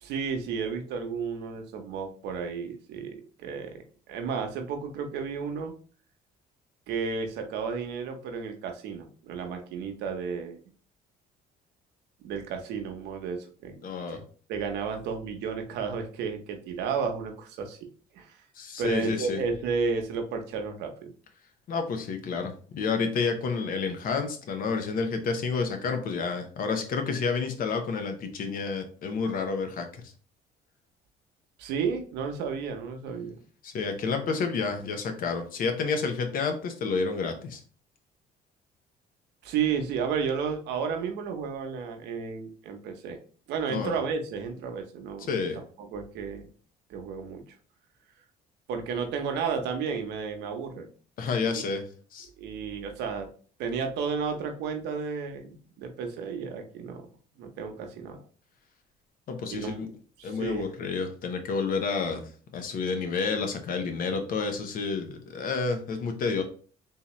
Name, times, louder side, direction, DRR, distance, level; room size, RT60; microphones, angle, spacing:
voice 1, 0.0-3.8 4.1-5.7 6.9-10.6 12.2-13.7 14.1-14.2 14.5-17.8 18.1-18.4 18.8-21.1 31.6-33.4 39.4-43.2 43.5-45.3 45.9-46.5 46.9-47.4 48.7-50.9 51.4-51.6 52.4-53.3 53.6-57.1 57.4-58.2 59.5-59.8 60.2-60.7, right 5 dB, 85° right, 5 dB, 0.8 m, -32 dB
voice 2, 13.8-14.2 18.6-19.4 21.7-30.1 33.6-37.6 43.7-44.0 45.3-45.6 51.2-51.9 52.1-52.3 59.3-59.9 60.2-66.4, left 4 dB, 55° left, 6 dB, 0.8 m, -30 dB
3.5 x 2.8 x 3.0 m, 0.41 s
cardioid pair, 110°, 17 cm